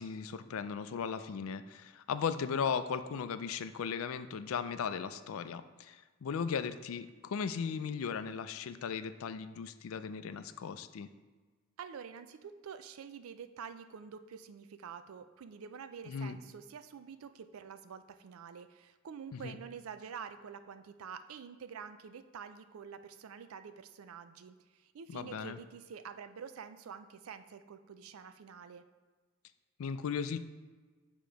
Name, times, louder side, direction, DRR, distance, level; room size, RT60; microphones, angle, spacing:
voice 1, 0.0-11.1 16.1-16.4 19.3-19.5 25.1-25.6 29.8-30.4, left 6 dB, 85° left, 11 dB, 0.4 m, -37 dB
voice 2, 11.8-28.8, right 7 dB, 85° right, 10 dB, 0.4 m, -47 dB
6.6 x 3.0 x 5.1 m, 1.3 s
head